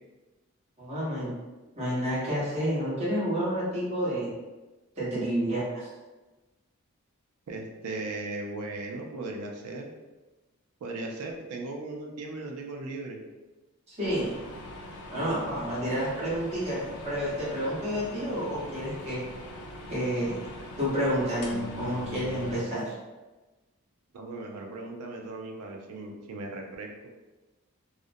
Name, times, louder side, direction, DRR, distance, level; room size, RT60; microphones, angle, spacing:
voice 1, 0.8-1.3 1.8-4.3 5.0-5.9 13.9-14.3 15.1-19.2 19.9-20.4 20.8-22.9, equal, 30° right, -8 dB, 0.9 m, -29 dB
voice 2, 7.5-9.9 10.8-13.2 24.1-26.9, right 2 dB, 85° right, 2 dB, 0.4 m, -37 dB
microwave oven, 14.0-22.7, left 2 dB, 75° left, 0.4 m, -42 dB
2.4 x 2.1 x 2.6 m, 1.2 s
head